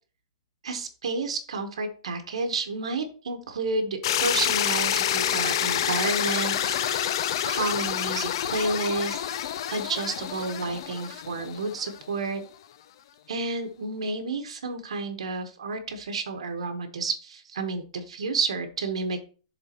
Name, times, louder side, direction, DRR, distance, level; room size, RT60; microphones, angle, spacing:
voice 1, 0.6-9.4 9.7-12.4 13.3-19.2, right 3 dB, 90° right, 6 dB, 1.1 m, -31 dB
sound 1, 4.0-12.0, left 10 dB, 50° left, 0.5 m, -28 dB
11.0 x 3.8 x 2.9 m, 0.37 s
hypercardioid pair, 160°, 3 cm